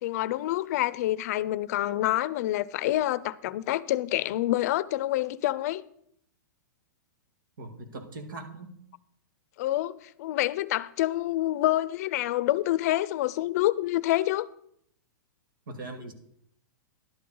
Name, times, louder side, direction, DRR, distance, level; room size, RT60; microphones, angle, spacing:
voice 1, 0.0-5.8 9.6-14.5, left 15 dB, 50° left, 0.5 m, -27 dB
voice 2, 7.6-8.7 15.7-16.1, right 2 dB, 90° right, 2.2 m, -40 dB
11.5 x 10.0 x 3.9 m
hypercardioid pair, 145°, 11 cm